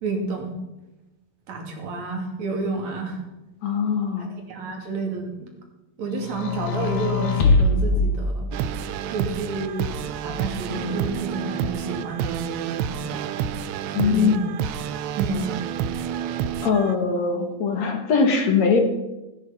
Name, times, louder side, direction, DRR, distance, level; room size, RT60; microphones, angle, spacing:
voice 1, 0.0-0.6 1.5-3.2 4.2-5.5 6.0-8.5 9.1-13.1 14.0-14.7 15.2-15.6, right 3 dB, 70° right, 2 dB, 3.9 m, -30 dB
voice 2, 3.6-4.3 13.9-14.4 16.6-18.8, left 5 dB, 65° left, 4 dB, 3.2 m, -21 dB
sound 1, 6.2-9.0 9.8-10.8, left 3 dB, 85° left, 3.1 m, -23 dB
sound 2, 8.5-17.0, right 9 dB, 90° right, 2.2 m, -29 dB
17.5 x 10.5 x 5.8 m, 1.0 s
omnidirectional pair, 3.3 m